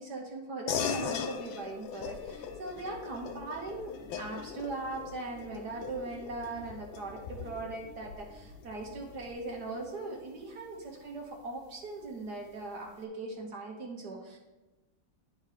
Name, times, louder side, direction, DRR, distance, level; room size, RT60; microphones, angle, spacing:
voice 1, 0.0-14.4, right 3 dB, 60° right, -1 dB, 1.5 m, -40 dB
sound 1, 0.7-10.5, left 7 dB, 90° left, 1.5 m, -40 dB
sound 2, 2.5-9.3, left 3 dB, 35° right, 1.2 m, -55 dB
sound 3, 5.7-10.0, left 6 dB, 75° left, 1.3 m, -53 dB
10.5 x 3.7 x 5.0 m, 1.1 s
omnidirectional pair, 2.1 m